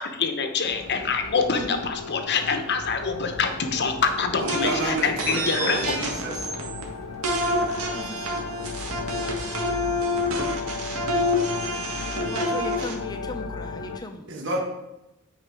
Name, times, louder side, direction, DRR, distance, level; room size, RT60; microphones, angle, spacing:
voice 1, 0.0-5.9, left 5 dB, 50° left, 6 dB, 0.9 m, -25 dB
sound 1, 0.6-14.0, left 4 dB, 80° left, 0.5 m, -36 dB
sound 2, 0.7-10.7, equal, 30° right, 1.9 m, -46 dB
voice 2, 4.3-6.3 14.3-14.6, right 2 dB, 55° right, -1 dB, 1.4 m, -30 dB
sound 3, 4.5-6.8 7.2-12.9, left 1 dB, 90° right, 1.7 m, -27 dB
voice 3, 7.9-8.4 12.2-14.3, left 1 dB, 20° left, 6 dB, 0.7 m, -37 dB
8.8 x 4.7 x 4.8 m, 0.93 s
head